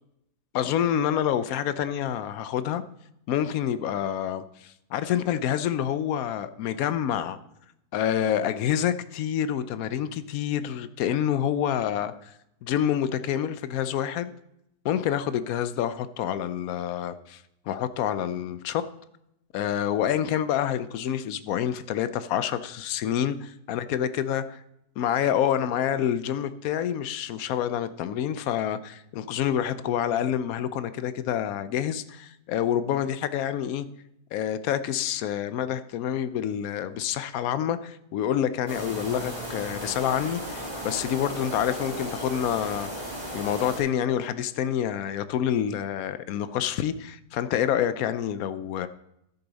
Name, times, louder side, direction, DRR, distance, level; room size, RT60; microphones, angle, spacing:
voice 1, 0.5-2.8 3.3-7.4 7.9-12.3 12.6-14.3 14.8-18.8 19.5-24.4 25.0-33.9 34.3-42.9 43.3-48.9, left 10 dB, 75° left, 1.0 m, -27 dB
sound 1, 38.7-43.8, equal, 25° right, 3.2 m, -35 dB
13.0 x 6.9 x 4.0 m
omnidirectional pair, 1.6 m